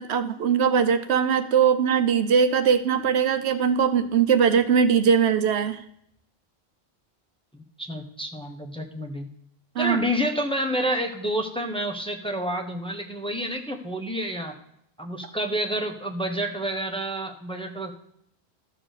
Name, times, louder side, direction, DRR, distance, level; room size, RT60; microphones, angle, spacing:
voice 1, 0.0-5.8 9.8-10.0, right 7 dB, 85° right, 9 dB, 1.0 m, -21 dB
voice 2, 7.5-9.3 9.8-14.5 15.0-17.9, equal, 5° left, 2 dB, 1.1 m, -29 dB
13.5 x 4.9 x 6.6 m, 0.72 s
omnidirectional pair, 1.1 m